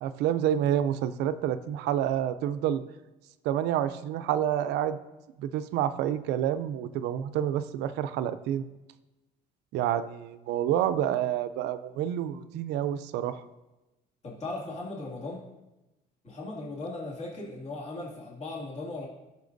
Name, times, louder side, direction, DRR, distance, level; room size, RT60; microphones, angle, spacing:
voice 1, 0.0-2.8 3.4-5.0 5.4-8.6 9.7-13.4, right 10 dB, 90° right, 12 dB, 0.5 m, -28 dB
voice 2, 14.2-15.5 16.2-19.1, left 2 dB, 40° left, -4 dB, 2.2 m, -37 dB
13.0 x 6.6 x 2.6 m, 1.0 s
cardioid pair, 110°, 17 cm